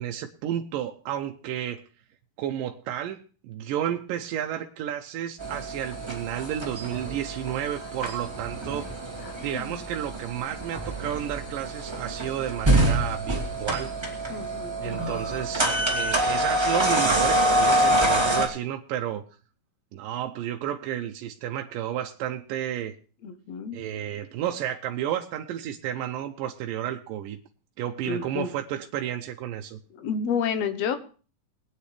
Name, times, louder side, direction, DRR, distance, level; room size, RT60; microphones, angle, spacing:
voice 1, 0.0-1.8 2.4-8.9 9.4-13.9 14.8-19.2 19.9-23.0 23.7-27.4 27.8-29.8, right 11 dB, 90° right, 4 dB, 2.4 m, -32 dB
sound 1, 5.4-18.5, right 1 dB, 10° right, 2.1 m, -26 dB
voice 2, 9.2-9.8 14.3-15.4 23.2-23.8 28.1-28.5 29.9-31.0, left 6 dB, 60° left, 9 dB, 2.0 m, -31 dB
21.5 x 9.3 x 3.3 m, 0.38 s
omnidirectional pair, 3.8 m